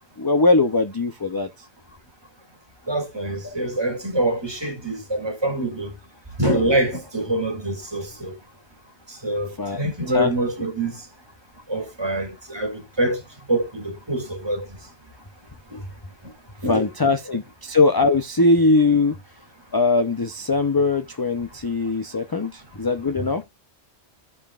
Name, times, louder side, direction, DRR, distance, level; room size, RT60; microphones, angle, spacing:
voice 1, 0.2-1.5 3.4-3.5 9.6-10.3 16.7-19.2 19.7-23.4, left 3 dB, 25° left, 0.5 m, -21 dB
voice 2, 2.9-5.9 6.4-8.3 9.1-11.0 11.7-13.2 13.5-14.7 15.7-15.8 16.6-17.1, right 1 dB, 20° right, 2.3 m, -25 dB
14.5 x 5.5 x 2.4 m
omnidirectional pair, 1.3 m